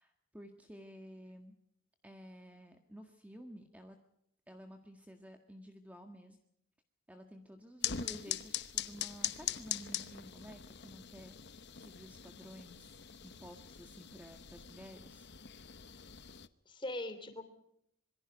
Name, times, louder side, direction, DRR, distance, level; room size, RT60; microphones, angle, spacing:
voice 1, 0.0-1.6 2.0-4.0 4.5-6.4 7.1-15.3, equal, 5° right, 5 dB, 1.6 m, -53 dB
sound 1, 7.8-16.5, left 11 dB, 50° left, 1.0 m, -42 dB
voice 2, 7.8-8.3 16.7-17.4, left 1 dB, 20° left, 9 dB, 3.1 m, -42 dB
26.0 x 23.0 x 5.2 m, 0.74 s
head